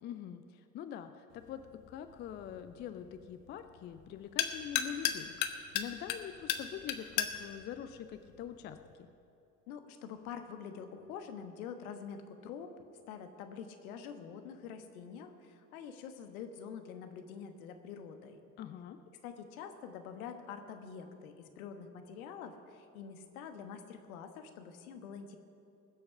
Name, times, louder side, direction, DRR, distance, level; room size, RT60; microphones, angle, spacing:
voice 1, 0.0-1.6 1.9-9.1 18.6-19.0, left 9 dB, 25° left, 10 dB, 0.4 m, -44 dB
sound 1, 1.3-8.9, left 10 dB, 45° left, 1.0 m, -38 dB
voice 2, 9.7-12.7 13.1-18.4 19.2-25.4, left 7 dB, 60° left, 7 dB, 1.4 m, -46 dB
20.5 x 7.7 x 5.6 m, 2.6 s
figure-of-eight pair, 75°, 48 cm